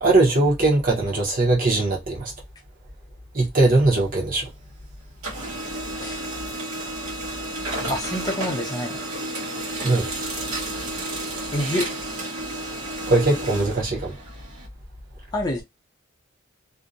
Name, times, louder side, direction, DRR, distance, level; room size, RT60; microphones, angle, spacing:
voice 1, 0.0-2.3 3.3-4.5 9.8-10.1 13.1-14.1, right 2 dB, 40° right, 0.8 m, -20 dB
Printer, 3.5-4.8 5.1-14.7, right 1 dB, 75° right, 1.3 m, -32 dB
voice 2, 7.8-9.0 11.5-11.9 15.3-15.6, left 1 dB, 20° left, 0.6 m, -27 dB
2.6 x 2.1 x 2.6 m
head